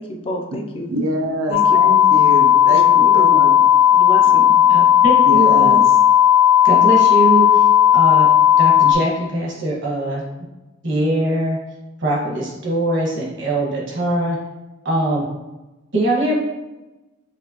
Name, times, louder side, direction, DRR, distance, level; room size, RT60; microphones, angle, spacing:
voice 1, 0.0-0.9 1.5-1.7 2.7-3.3 3.9-4.5, equal, 25° left, 3 dB, 0.4 m, -29 dB
voice 2, 0.9-3.5 4.2-4.3 5.2-5.8, right 1 dB, 85° right, 1 dB, 0.7 m, -25 dB
sound 1, 1.5-8.9, left 10 dB, 85° left, 0.7 m, -13 dB
voice 3, 4.7-5.8 6.6-7.6 7.9-8.3 8.6-10.2 10.8-11.6 12.0-14.4 14.8-15.3 15.9-16.4, right 1 dB, 60° right, -4 dB, 1.5 m, -21 dB
5.1 x 3.2 x 2.9 m, 1.1 s
head